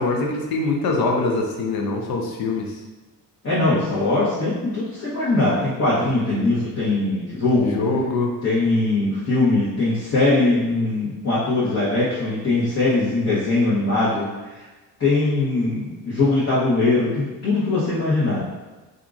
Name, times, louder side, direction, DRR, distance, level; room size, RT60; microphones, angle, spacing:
voice 1, 0.0-2.6 7.6-8.3, left 3 dB, 60° left, 1 dB, 0.6 m, -23 dB
voice 2, 3.4-7.8 8.4-14.6 15.0-18.4, left 2 dB, 40° left, -10 dB, 1.0 m, -21 dB
2.8 x 2.5 x 2.4 m, 1.2 s
supercardioid pair, 60°, 40 cm